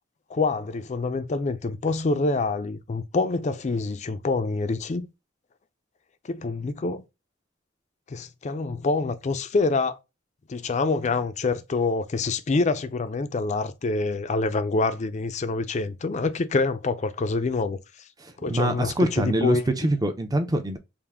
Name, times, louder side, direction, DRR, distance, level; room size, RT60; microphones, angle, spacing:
voice 1, 0.3-5.1 6.3-7.0 8.1-10.0 10.5-17.8 18.4-19.6, left 3 dB, 35° left, 0.4 m, -26 dB
voice 2, 18.2-20.8, right 1 dB, 20° right, 0.5 m, -25 dB
3.6 x 2.5 x 3.4 m
head